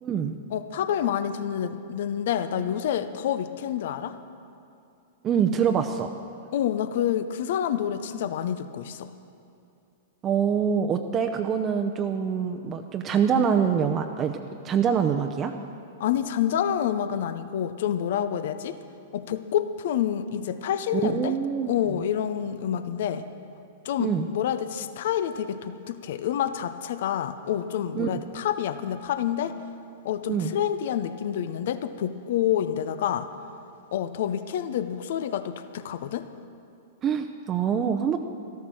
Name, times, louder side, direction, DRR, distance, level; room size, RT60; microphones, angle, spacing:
voice 1, 0.0-0.3 5.2-6.1 10.2-15.5 20.9-22.0 24.0-24.3 28.0-28.2 30.3-30.5 37.0-38.2, right 7 dB, 30° right, 5 dB, 0.7 m, -25 dB
voice 2, 0.5-4.1 6.5-9.1 16.0-18.8 19.1-21.3 21.6-23.3 23.8-29.6 30.0-33.3 33.9-36.3, left 10 dB, 65° left, 11 dB, 0.7 m, -28 dB
13.0 x 13.0 x 6.3 m, 2.5 s
hypercardioid pair, 115°, 0 cm